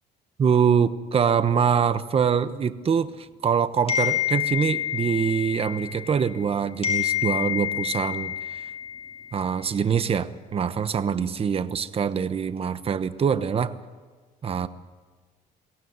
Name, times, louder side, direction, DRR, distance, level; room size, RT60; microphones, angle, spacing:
voice 1, 0.4-8.6 9.3-13.7 14.4-14.7, right 7 dB, 35° right, 12 dB, 1.1 m, -24 dB
sound 1, 3.9-6.5 6.8-9.4, left 11 dB, 35° left, 5.3 m, -28 dB
22.5 x 17.5 x 9.5 m, 1.4 s
cardioid pair, 110°, 17 cm